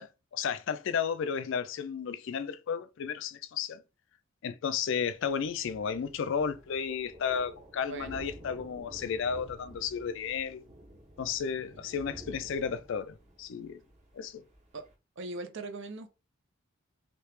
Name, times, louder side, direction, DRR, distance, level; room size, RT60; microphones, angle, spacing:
voice 1, 0.0-3.8 4.4-10.6 11.2-13.8 14.1-14.4, left 6 dB, 60° left, 0.3 m, -33 dB
Thunder, 5.0-14.9, right 1 dB, 35° right, 1.0 m, -52 dB
voice 2, 7.8-8.2 14.7-14.9 15.2-16.1, right 2 dB, 60° right, 0.6 m, -40 dB
3.1 x 2.8 x 3.2 m
head